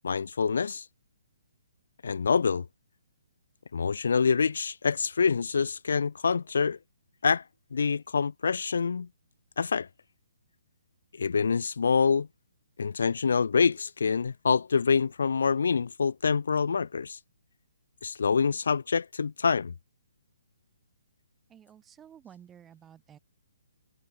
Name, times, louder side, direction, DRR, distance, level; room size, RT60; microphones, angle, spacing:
voice 1, 0.0-0.9 2.0-2.7 3.7-6.8 7.2-7.4 7.7-9.1 9.6-9.9 11.2-12.3 12.8-17.2 18.0-19.7, left 5 dB, 60° left, 0.3 m, -26 dB
voice 2, 21.5-23.2, right 9 dB, 15° right, 2.7 m, -52 dB
figure-of-eight pair, 130°, 0 cm